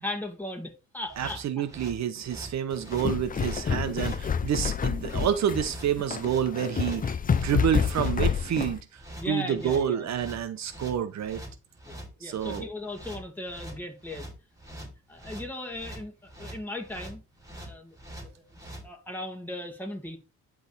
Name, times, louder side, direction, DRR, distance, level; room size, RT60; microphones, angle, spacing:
voice 1, 0.0-1.6 9.2-10.1 11.8-14.3 14.7-17.2 17.5-20.2, left 1 dB, 5° left, 2.5 m, -38 dB
sound 1, 1.0-18.9, right 1 dB, 10° right, 3.4 m, -44 dB
voice 2, 1.2-7.2 7.4-9.0 9.3-11.4 12.2-12.7, right 9 dB, 65° right, 0.9 m, -28 dB
sound 2, 2.7-8.8, left 7 dB, 30° left, 0.6 m, -28 dB
10.0 x 3.6 x 4.1 m
cardioid pair, 90°, 30 cm